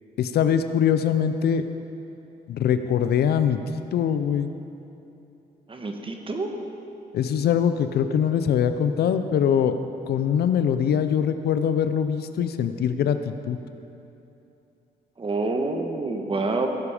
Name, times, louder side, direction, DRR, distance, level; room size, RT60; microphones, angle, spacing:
voice 1, 0.2-1.6 2.5-4.5 7.1-9.7 10.1-13.6, left 8 dB, 75° left, 10 dB, 0.6 m, -23 dB
voice 2, 5.7-6.5 15.2-16.7, right 3 dB, 30° right, 4 dB, 1.4 m, -27 dB
16.5 x 8.4 x 5.1 m, 2.9 s
cardioid pair, 90°, 17 cm